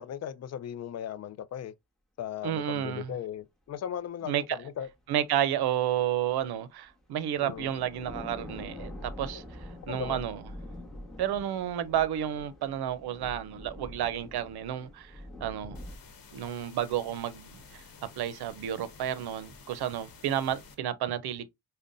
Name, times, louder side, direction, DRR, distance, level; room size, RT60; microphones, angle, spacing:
voice 1, 0.0-1.7 2.2-4.9 7.4-7.7 9.3-9.4 9.9-10.3, left 9 dB, 45° left, 0.4 m, -37 dB
voice 2, 2.4-3.1 4.3-4.6 5.1-9.4 9.9-10.4 11.2-15.1 15.4-15.8 16.3-17.8 18.2-21.5, right 10 dB, 85° right, 0.6 m, -31 dB
sound 1, 4.8-5.2 5.7-5.8 6.9-7.0 7.3-16.0, left 1 dB, ahead, 1.2 m, -45 dB
sound 2, 15.7-20.7, left 4 dB, 65° left, 1.0 m, -52 dB
5.2 x 2.2 x 2.5 m
cardioid pair, 95°, 38 cm